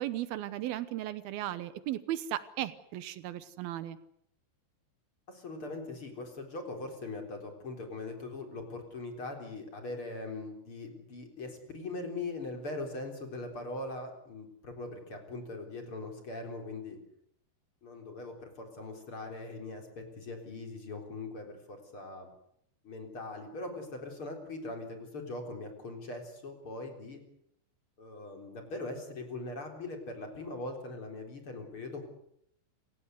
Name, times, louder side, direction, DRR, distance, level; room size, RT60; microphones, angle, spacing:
voice 1, 0.0-4.0, right 13 dB, 75° right, 14 dB, 2.3 m, -36 dB
voice 2, 5.3-17.0 17.8-22.3 22.8-27.2 28.0-32.1, left 2 dB, 30° left, 4 dB, 4.1 m, -41 dB
27.5 x 17.5 x 8.2 m, 0.72 s
omnidirectional pair, 5.6 m